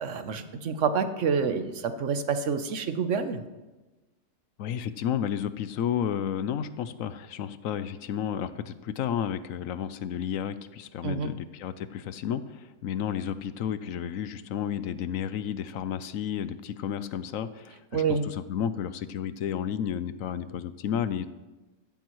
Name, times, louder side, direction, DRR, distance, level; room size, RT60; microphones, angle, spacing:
voice 1, 0.0-3.4 11.0-11.3 17.9-18.3, right 5 dB, 65° right, 9 dB, 1.1 m, -28 dB
voice 2, 4.6-21.3, left 9 dB, 75° left, 13 dB, 1.0 m, -32 dB
14.5 x 12.0 x 3.1 m, 1.1 s
omnidirectional pair, 1.5 m